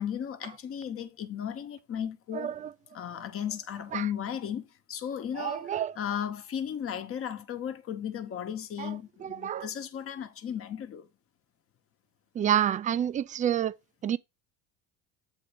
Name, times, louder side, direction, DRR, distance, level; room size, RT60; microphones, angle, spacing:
voice 1, 0.0-2.5 2.9-11.1, left 9 dB, 40° left, 1.2 m, -35 dB
voice 2, 2.3-2.7 3.9-4.1 5.4-5.9 8.8-9.7 12.3-13.8 14.0-14.2, right 10 dB, 20° right, 0.4 m, -29 dB
7.9 x 3.8 x 5.1 m
supercardioid pair, 105°, 35 cm